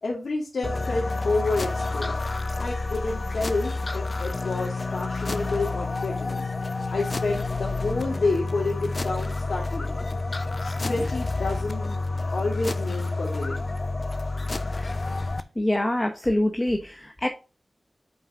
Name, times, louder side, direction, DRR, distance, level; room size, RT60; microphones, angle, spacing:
voice 1, 0.0-2.2 2.6-6.5 6.9-10.0 10.6-12.0 12.3-13.7, left 3 dB, 80° left, -2 dB, 2.0 m, -29 dB
sound 1, 0.6-15.4, left 3 dB, 50° left, 0.6 m, -29 dB
voice 2, 15.6-17.3, left 1 dB, 20° left, 5 dB, 1.0 m, -25 dB
5.8 x 5.4 x 5.0 m, 0.33 s
cardioid pair, 45°, 0 cm